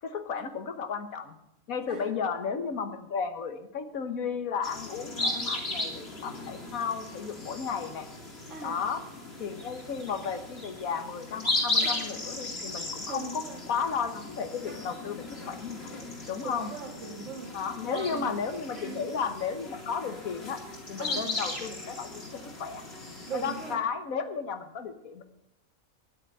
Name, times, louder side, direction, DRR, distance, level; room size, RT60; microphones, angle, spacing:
voice 1, 0.0-1.4 1.7-8.1 8.6-9.0 9.4-15.9 16.3-16.7 17.5-20.6 20.9-22.8 23.3-25.2, left 6 dB, 85° left, 9 dB, 1.6 m, -34 dB
sound 1, 4.6-23.8, left 2 dB, 50° left, 2.9 m, -36 dB
voice 2, 13.1-13.6 16.4-18.4 18.7-19.2 21.0-21.3 23.3-23.8, right 4 dB, 60° right, 3 dB, 2.3 m, -40 dB
10.0 x 9.0 x 7.8 m, 0.85 s
omnidirectional pair, 1.4 m